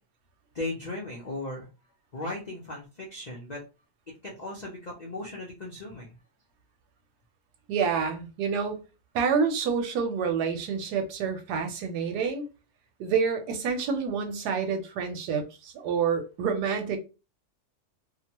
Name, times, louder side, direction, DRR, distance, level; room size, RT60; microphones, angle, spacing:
voice 1, 0.5-1.7 2.1-3.6 4.2-6.2, left 2 dB, 65° left, 0.4 m, -37 dB
voice 2, 7.7-8.8 9.1-12.5 13.0-17.0, right 6 dB, 80° right, 1.2 m, -28 dB
2.9 x 2.1 x 2.8 m
omnidirectional pair, 1.7 m